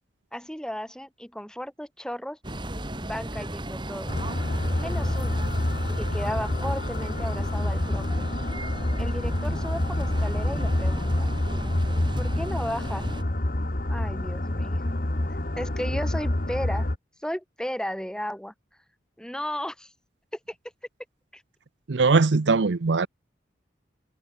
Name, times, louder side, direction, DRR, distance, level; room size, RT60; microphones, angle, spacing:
voice 1, 0.3-2.4 3.0-4.2 4.8-5.5 6.0-8.2 9.0-11.3 12.2-13.1 13.9-14.8 15.6-16.9 17.2-18.5 19.2-19.9 20.5-20.6 21.3-21.4, equal, 5° left, 3.6 m, -34 dB
sound 1, 2.4-13.2, right 1 dB, 25° right, 3.9 m, -35 dB
sound 2, 4.1-17.0, left 1 dB, 50° left, 1.6 m, -27 dB
voice 2, 21.9-23.1, right 4 dB, 75° right, 0.7 m, -20 dB
head